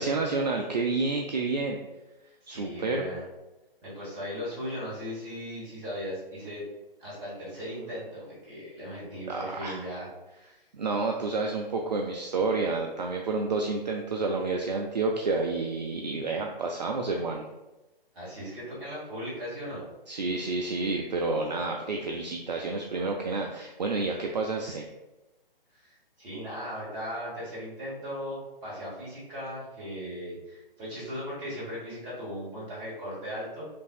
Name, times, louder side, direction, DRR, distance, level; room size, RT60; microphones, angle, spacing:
voice 1, 0.0-1.8 2.5-3.1 9.3-9.8 10.7-17.5 20.1-24.9, right 3 dB, 50° right, 2 dB, 0.4 m, -29 dB
voice 2, 2.4-3.2 3.8-6.6 7.0-10.1 10.3-10.6 18.1-19.8 25.7-33.6, equal, 15° right, -7 dB, 1.3 m, -38 dB
5.2 x 2.6 x 2.4 m, 1.0 s
figure-of-eight pair, 135°, 29 cm